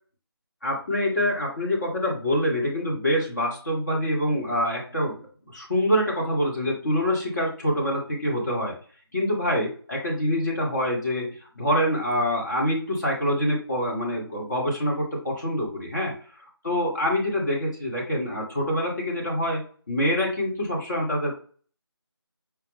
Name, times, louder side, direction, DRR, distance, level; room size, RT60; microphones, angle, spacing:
voice 1, 0.6-5.2 5.5-8.8 9.1-11.3 11.6-16.1 16.6-21.3, equal, 45° left, -3 dB, 1.4 m, -25 dB
4.9 x 2.3 x 3.4 m, 0.41 s
figure-of-eight pair, 165°, 13 cm